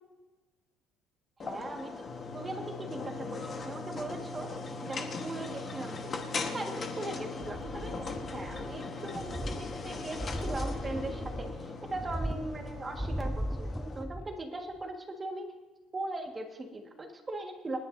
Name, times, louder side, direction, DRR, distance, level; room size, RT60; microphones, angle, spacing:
sound 1, 1.4-14.0, left 4 dB, 25° left, 1.3 m, -40 dB
voice 1, 1.4-2.0 2.3-6.2 6.5-15.5 15.9-17.8, right 2 dB, 15° right, 3 dB, 1.6 m, -39 dB
sound 2, 2.1-13.5, equal, 85° left, 2.2 m, -48 dB
sound 3, 7.4-8.8 9.1-14.4 14.8-14.9, equal, ahead, 0.3 m, -38 dB
29.0 x 10.5 x 2.7 m, 1.2 s
cardioid pair, 170°, 0 cm